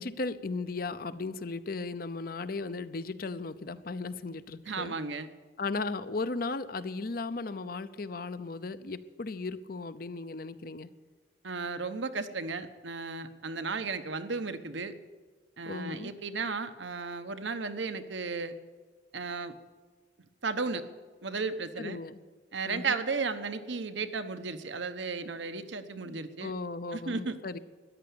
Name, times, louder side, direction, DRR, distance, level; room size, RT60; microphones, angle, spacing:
voice 1, 0.0-4.9 5.6-10.9 15.7-16.1 21.8-22.2 22.7-23.0 26.1-27.6, left 3 dB, 50° left, 14 dB, 0.6 m, -36 dB
voice 2, 4.6-5.3 11.4-14.9 15.6-18.5 19.1-19.5 20.4-20.8 21.2-22.0 22.5-26.5 26.9-27.4, right 4 dB, 80° right, 10 dB, 1.0 m, -34 dB
14.0 x 10.5 x 8.5 m, 1.4 s
head